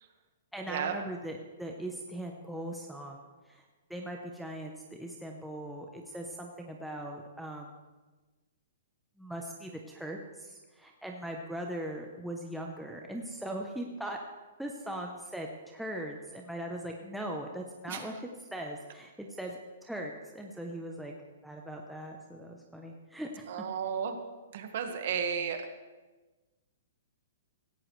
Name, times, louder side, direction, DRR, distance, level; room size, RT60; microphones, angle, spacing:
voice 1, 0.5-3.2 3.5-3.6 3.9-7.7 9.2-14.2 14.6-18.2 18.5-21.1 21.4-23.5, right 1 dB, ahead, 0 dB, 0.7 m, -40 dB
voice 2, 23.5-24.2 24.5-25.6, right 7 dB, 40° right, 6 dB, 1.5 m, -33 dB
16.5 x 16.0 x 3.2 m, 1.2 s
hypercardioid pair, 180°, 0 cm